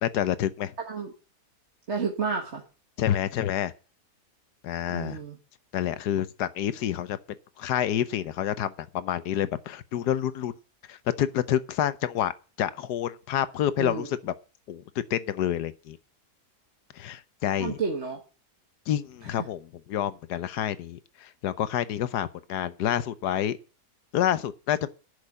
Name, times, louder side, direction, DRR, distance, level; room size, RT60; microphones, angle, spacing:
voice 1, 0.0-0.7 3.0-3.7 4.6-5.2 5.7-7.2 7.6-10.5 10.9-12.3 12.6-14.3 14.7-14.8 15.1-16.0 17.0-17.8 18.9-19.6 19.9-23.6 24.1-24.9, left 11 dB, 85° left, 1.4 m, -28 dB
voice 2, 0.8-1.1 1.9-2.6 4.9-5.4 13.8-14.1 17.6-18.2 19.2-19.5, right 5 dB, 45° right, 1.8 m, -31 dB
10.5 x 6.8 x 8.5 m
omnidirectional pair, 1.7 m